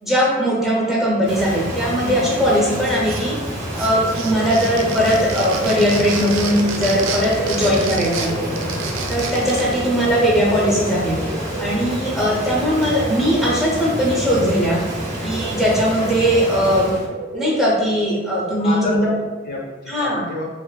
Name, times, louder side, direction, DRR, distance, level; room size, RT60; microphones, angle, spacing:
voice 1, 0.0-3.5 3.8-8.6 9.1-11.2 11.6-14.8 15.2-17.0 17.3-19.1 19.9-20.2, equal, ahead, -5 dB, 0.5 m, -19 dB
Rain, 1.2-17.1, equal, 40° right, 0.7 m, -28 dB
sound 1, 2.8-3.5 3.7-9.7, right 5 dB, 85° right, 0.3 m, -29 dB
sound 2, 3.9-19.2, right 2 dB, 85° left, 0.8 m, -34 dB
voice 2, 7.6-8.5 18.6-20.5, left 2 dB, 55° left, -2 dB, 0.5 m, -30 dB
2.4 x 2.4 x 2.2 m, 1.3 s
head